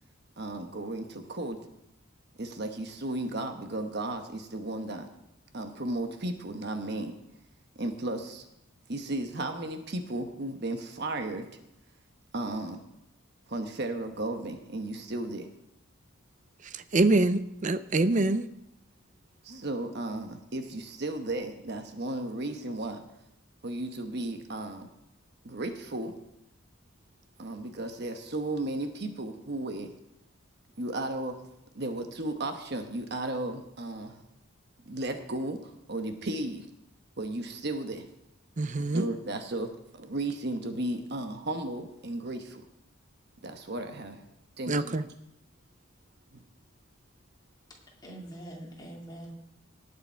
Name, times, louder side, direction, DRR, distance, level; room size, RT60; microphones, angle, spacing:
voice 1, 0.4-1.6 2.4-5.1 5.5-7.1 7.8-8.4 8.9-11.4 12.3-12.8 13.5-15.5 19.4-23.0 23.6-24.9 25.4-26.1 27.4-29.9 30.8-31.4 31.7-34.2 34.9-36.7 37.2-38.0 38.9-42.6 43.4-44.2 44.6-44.7 46.3-46.4, right 2 dB, 50° right, 6 dB, 1.1 m, -34 dB
voice 2, 16.7-18.5 38.6-39.1 44.7-45.1, right 2 dB, 35° right, 13 dB, 0.5 m, -25 dB
voice 3, 48.0-49.3, right 1 dB, 20° left, -2 dB, 2.6 m, -43 dB
18.5 x 6.8 x 4.5 m, 0.85 s
head